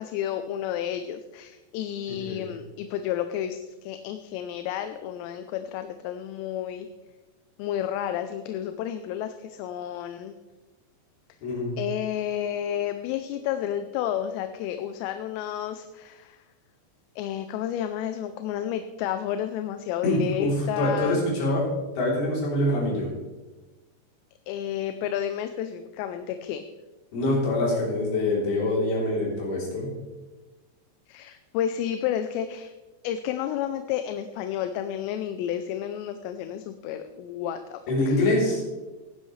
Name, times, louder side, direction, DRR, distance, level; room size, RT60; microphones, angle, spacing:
voice 1, 0.0-6.9 7.6-10.4 11.8-16.4 17.2-21.2 24.5-26.7 31.1-32.7 33.0-37.8 38.1-38.2, left 10 dB, 85° left, 8 dB, 2.8 m, -31 dB
voice 2, 2.1-2.4 11.4-11.8 20.0-23.1 27.1-29.9 37.9-38.6, left 1 dB, 65° left, -4 dB, 5.4 m, -25 dB
17.5 x 10.0 x 3.3 m, 1.2 s
omnidirectional pair, 5.1 m